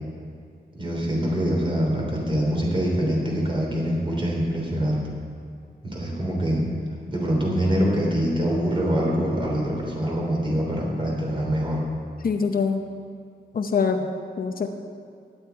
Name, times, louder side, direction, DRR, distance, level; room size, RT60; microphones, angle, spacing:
voice 1, 0.7-5.0 5.8-6.6 7.1-11.8, equal, 30° right, -2 dB, 3.3 m, -24 dB
voice 2, 12.2-12.8 13.5-14.1 14.4-14.7, left 5 dB, 55° left, 5 dB, 0.8 m, -23 dB
17.0 x 10.5 x 4.6 m, 2.3 s
wide cardioid pair, 175°, 18 cm